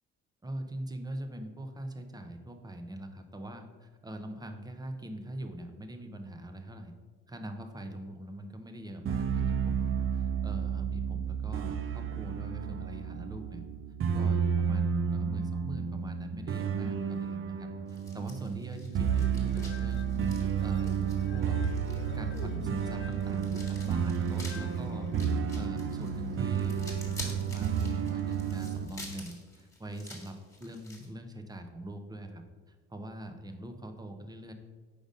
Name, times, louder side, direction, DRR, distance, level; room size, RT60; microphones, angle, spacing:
voice 1, 0.4-6.9 7.3-13.6 14.1-21.6 22.1-25.1 25.6-34.5, right 1 dB, 15° right, 6 dB, 0.7 m, -43 dB
sound 1, 9.1-28.9, right 7 dB, 45° right, 0.5 m, -31 dB
sound 2, 17.9-31.1, left 1 dB, 10° left, 1.5 m, -49 dB
sound 3, 18.9-25.7, left 7 dB, 40° left, 0.5 m, -49 dB
5.1 x 3.9 x 5.2 m, 1.4 s
cardioid pair, 90°, 30 cm